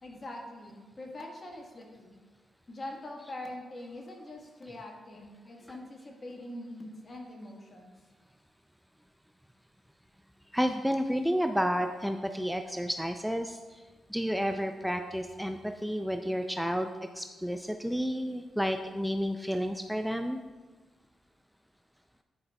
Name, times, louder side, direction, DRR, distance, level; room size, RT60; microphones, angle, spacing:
voice 1, 0.0-2.2 2.7-7.9, left 1 dB, 45° left, 1 dB, 1.5 m, -43 dB
voice 2, 10.5-13.6 14.1-16.9 17.2-20.4, equal, ahead, 6 dB, 0.4 m, -31 dB
9.5 x 5.1 x 2.3 m, 1.3 s
hypercardioid pair, 45°, 0 cm